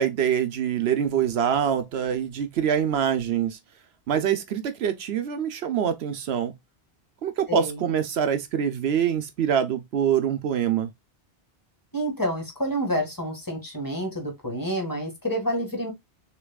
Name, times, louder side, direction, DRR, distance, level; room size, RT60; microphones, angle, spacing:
voice 1, 0.0-3.6 4.1-6.5 7.2-10.9, right 8 dB, 75° right, 0.9 m, -25 dB
voice 2, 7.5-7.8 11.9-15.9, equal, 20° left, 1.9 m, -28 dB
6.5 x 3.0 x 2.3 m
omnidirectional pair, 1.1 m